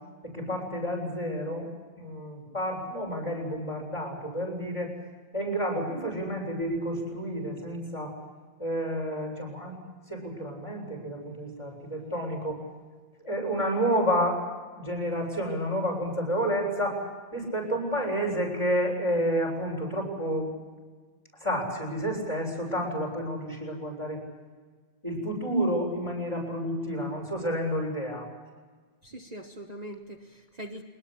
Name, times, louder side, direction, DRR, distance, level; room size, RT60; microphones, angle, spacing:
voice 1, 0.2-1.7 2.0-4.9 5.3-8.1 8.6-9.7 10.1-12.6 13.2-14.4 14.8-17.0 17.3-20.5 21.4-24.2 25.0-28.3, equal, 25° left, 0 dB, 8.0 m, -30 dB
voice 2, 29.0-30.8, right 1 dB, 35° right, 3 dB, 1.3 m, -42 dB
23.0 x 20.5 x 8.5 m, 1.4 s
omnidirectional pair, 1.3 m